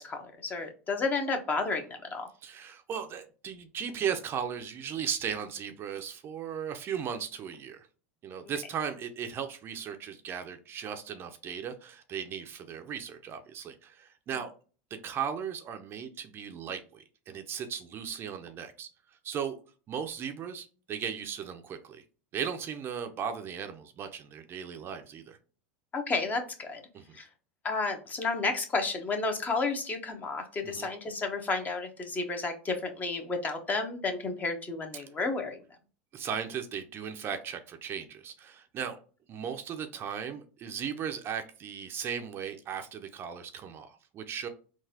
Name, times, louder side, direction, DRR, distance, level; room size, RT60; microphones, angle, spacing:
voice 1, 0.0-2.3 25.9-26.8 27.1-27.3 27.6-35.6, left 3 dB, 25° left, 5 dB, 0.9 m, -31 dB
voice 2, 2.4-7.9 8.2-14.5 14.9-18.9 19.2-19.6 19.9-22.0 22.3-25.4 26.9-27.2 30.6-30.9 36.1-39.0 39.3-44.5, right 7 dB, 35° right, 7 dB, 0.5 m, -37 dB
3.9 x 2.4 x 2.7 m, 0.37 s
hypercardioid pair, 105°, 7 cm